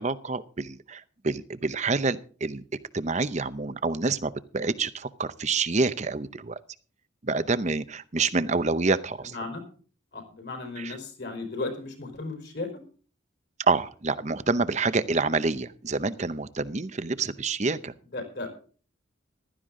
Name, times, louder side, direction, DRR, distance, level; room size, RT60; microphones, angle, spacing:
voice 1, 0.0-2.6 2.9-6.6 7.2-9.4 10.8-11.0 13.7-17.9, right 3 dB, 35° right, 14 dB, 0.7 m, -27 dB
voice 2, 9.2-9.6 10.1-12.7 18.1-18.5, left 3 dB, 55° left, 5 dB, 4.6 m, -35 dB
15.5 x 13.0 x 3.7 m, 0.40 s
head